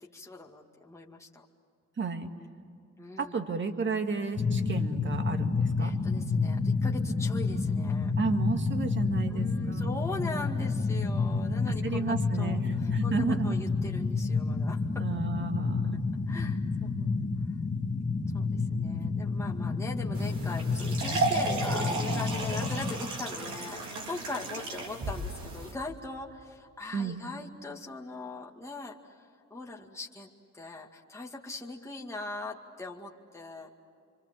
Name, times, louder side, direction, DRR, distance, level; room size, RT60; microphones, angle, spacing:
voice 1, 0.1-1.4 3.0-3.4 5.8-8.1 9.3-15.0 16.3-17.1 18.3-29.3 29.5-30.3 30.5-33.7, left 3 dB, 10° left, -2 dB, 2.1 m, -41 dB
voice 2, 2.0-2.3 3.2-5.9 8.2-10.0 11.7-13.6 15.0-16.0 26.9-27.2, right 4 dB, 40° right, 6 dB, 2.1 m, -32 dB
sound 1, 4.4-22.9, left 4 dB, 25° left, 1.8 m, -29 dB
sound 2, 20.1-25.7, right 3 dB, 70° right, 3.9 m, -33 dB
27.5 x 24.5 x 7.8 m, 2.5 s
cardioid pair, 90°, 30 cm